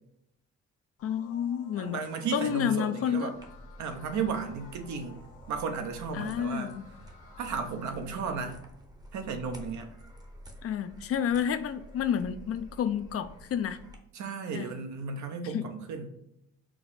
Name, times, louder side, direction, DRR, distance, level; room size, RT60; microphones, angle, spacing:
sound 1, 1.0-7.8, left 4 dB, 75° left, 1.4 m, -55 dB
voice 1, 1.0-2.0 2.3-3.3 6.1-6.8 10.6-13.8 14.5-14.7 15.4-15.7, left 8 dB, 50° left, 10 dB, 0.4 m, -30 dB
voice 2, 1.8-3.4 3.8-5.2 5.5-6.7 7.4-8.6 9.1-9.9 14.1-16.1, right 5 dB, 70° right, 6 dB, 0.7 m, -34 dB
sound 2, 3.3-14.0, equal, 15° right, 0.7 m, -50 dB
4.7 x 2.0 x 4.0 m, 0.78 s
cardioid pair, 90°, 30 cm